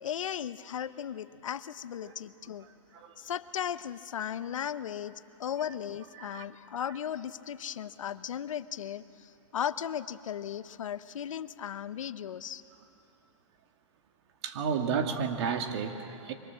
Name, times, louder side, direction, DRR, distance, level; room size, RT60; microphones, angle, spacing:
voice 1, 0.0-2.7 3.2-9.0 9.5-12.6, left 9 dB, 85° left, 14 dB, 0.8 m, -36 dB
voice 2, 14.4-16.3, right 6 dB, 55° right, 5 dB, 2.3 m, -32 dB
25.5 x 24.5 x 7.5 m, 2.7 s
hypercardioid pair, 135°, 16 cm